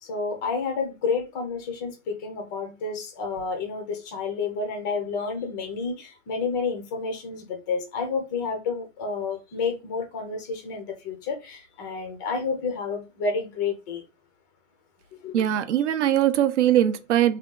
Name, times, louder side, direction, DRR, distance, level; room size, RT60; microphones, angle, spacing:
voice 1, 0.0-14.0 15.1-15.5, left 4 dB, 15° left, 0.4 m, -30 dB
voice 2, 15.3-17.4, right 11 dB, 60° right, 0.6 m, -21 dB
3.5 x 2.3 x 3.7 m
hypercardioid pair, 160°, 40 cm